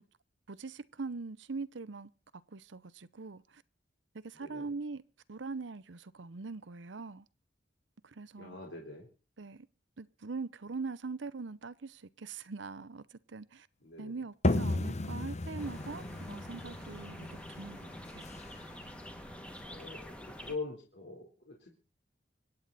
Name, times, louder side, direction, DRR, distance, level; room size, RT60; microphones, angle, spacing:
voice 1, 0.5-3.6 4.1-5.0 5.3-7.2 8.0-8.6 9.4-9.7 10.0-13.7 14.0-18.2, right 4 dB, 75° right, 0.8 m, -42 dB
voice 2, 8.4-9.1 13.8-14.1 19.6-21.8, left 3 dB, 70° left, 3.9 m, -43 dB
sound 1, 14.4-19.9, left 1 dB, 40° left, 1.1 m, -35 dB
sound 2, 15.6-20.5, equal, 5° left, 2.0 m, -47 dB
26.0 x 9.2 x 4.1 m
head